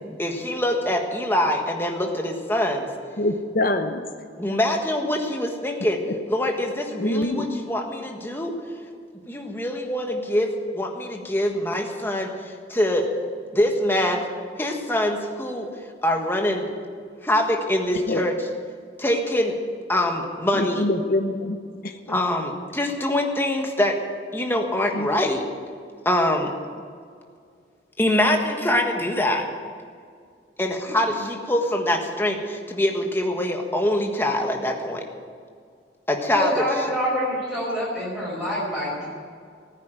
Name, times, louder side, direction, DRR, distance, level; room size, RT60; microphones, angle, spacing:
voice 1, 0.2-2.9 4.4-6.0 6.3-8.5 9.3-13.1 13.5-14.2 14.6-15.7 16.0-16.7 17.2-18.5 19.0-19.5 19.9-20.9 22.1-24.0 24.3-25.4 26.0-26.5 28.0-29.4 30.6-35.0 36.1-36.5, left 1 dB, 10° left, 2 dB, 1.5 m, -24 dB
voice 2, 3.2-4.0 7.0-7.6 18.1-18.2 20.6-21.6 25.0-25.1, left 1 dB, 50° left, 6 dB, 0.9 m, -24 dB
voice 3, 36.3-39.1, equal, 5° right, -7 dB, 5.2 m, -26 dB
15.5 x 9.6 x 9.2 m, 2.2 s
head